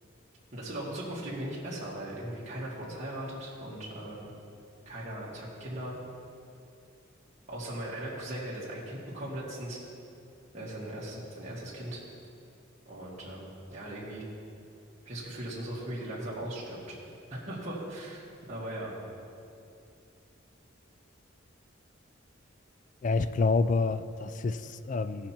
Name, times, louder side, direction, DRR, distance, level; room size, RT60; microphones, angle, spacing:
voice 1, 0.5-4.3 4.9-6.0 7.5-9.8 10.5-12.0 12.9-14.2 15.0-17.0 17.3-18.2 18.5-18.9, right 1 dB, 35° right, -8 dB, 1.9 m, -38 dB
voice 2, 23.0-25.3, left 4 dB, 40° left, 13 dB, 0.3 m, -28 dB
17.5 x 5.8 x 4.4 m, 2.6 s
head